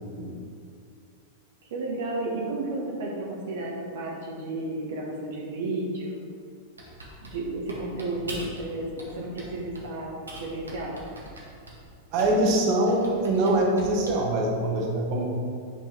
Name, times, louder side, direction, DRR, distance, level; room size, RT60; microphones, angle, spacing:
voice 1, 0.1-0.4 12.1-15.3, right 1 dB, 45° right, -1 dB, 1.5 m, -24 dB
voice 2, 1.7-6.2 7.3-11.0, right 2 dB, 65° right, -3 dB, 1.4 m, -32 dB
Typing, 6.8-8.6 9.0-9.9 10.3-12.5 12.9-14.3, right 1 dB, 85° right, 1.8 m, -42 dB
8.4 x 5.5 x 4.5 m, 2.4 s
figure-of-eight pair, 95°, 0 cm